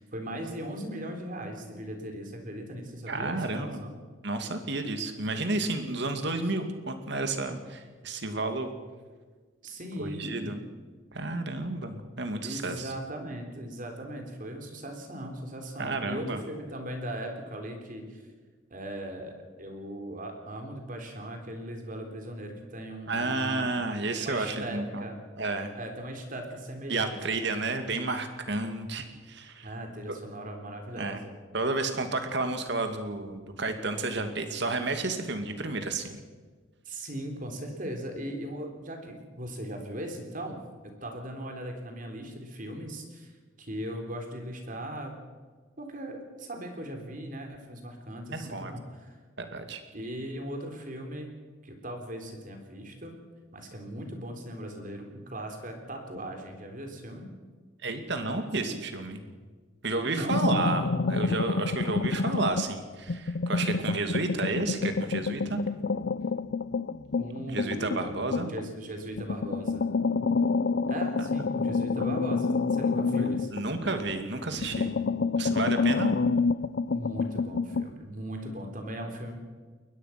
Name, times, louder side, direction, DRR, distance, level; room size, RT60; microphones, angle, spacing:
voice 1, 0.0-3.9 9.6-10.5 12.4-18.2 18.7-23.7 24.2-25.2 25.7-27.5 29.6-31.3 36.9-40.6 40.8-45.2 45.8-49.2 49.9-51.3 51.6-53.1 53.5-57.2 60.0-60.7 67.2-69.8 70.9-73.8 75.8-75.9 76.9-79.3, right 1 dB, 40° right, 4 dB, 3.7 m, -38 dB
voice 2, 3.1-3.8 4.2-8.7 10.0-10.6 11.1-12.9 15.8-16.4 23.1-25.1 25.4-25.7 26.9-29.7 30.1-30.2 31.0-31.2 31.5-36.1 48.3-48.7 49.4-49.8 57.8-59.2 59.8-65.6 67.5-68.5 71.2-71.5 72.0-72.2 73.2-74.9 75.4-76.1, right 2 dB, 60° right, 7 dB, 2.4 m, -31 dB
sound 1, 60.3-62.8 63.1-68.7 69.2-74.2 74.5-77.9, left 4 dB, 55° left, 0.5 m, -28 dB
22.0 x 19.5 x 6.0 m, 1.4 s
head